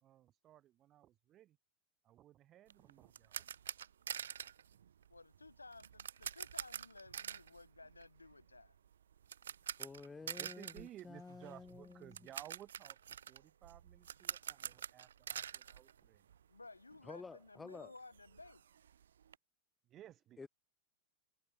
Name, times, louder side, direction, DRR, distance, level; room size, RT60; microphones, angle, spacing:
voice 1, 0.0-1.6 2.0-3.4 10.2-16.2 19.8-20.5, right 12 dB, 30° right, 1.6 m, -57 dB
sound 1, 2.7-16.7 16.9-17.1 17.5-17.6 17.8-19.4, right 9 dB, 65° right, 0.5 m, -47 dB
voice 2, 5.1-8.8 16.5-18.6, left 3 dB, 80° left, 0.7 m, -56 dB
voice 3, 9.8-12.2 17.0-17.9 20.4-20.5, left 4 dB, 10° left, 0.5 m, -51 dB
figure-of-eight pair, 90°, 0 cm